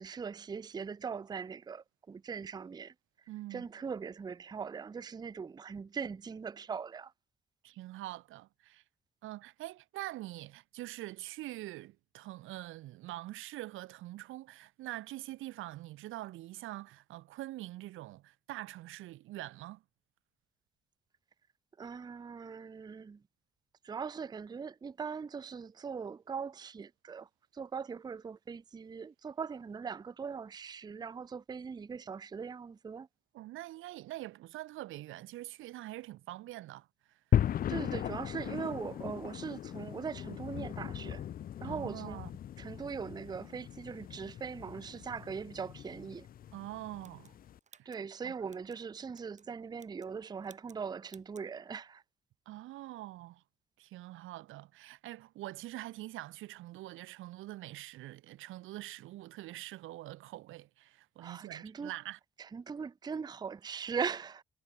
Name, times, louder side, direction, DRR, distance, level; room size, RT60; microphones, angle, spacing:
voice 1, 0.0-2.9 3.5-7.1 21.8-23.2 23.8-33.1 37.7-41.2 41.6-42.2 42.6-46.3 47.9-52.0 61.2-61.9 62.4-64.4, right 6 dB, 20° right, 0.4 m, -40 dB
voice 2, 3.3-3.7 7.6-8.8 9.2-19.8 33.3-37.2 41.6-42.3 46.5-47.4 47.7-47.9 48.2-48.3 52.5-53.4 53.8-62.2, right 16 dB, 85° right, 0.9 m, -44 dB
sound 1, 37.3-47.6, left 10 dB, 45° left, 0.5 m, -37 dB
sound 2, 47.0-48.8 49.1-49.5 49.7-50.2 50.4-50.8 51.1-51.5, right 5 dB, 35° right, 4.1 m, -61 dB
cardioid pair, 90°, 20 cm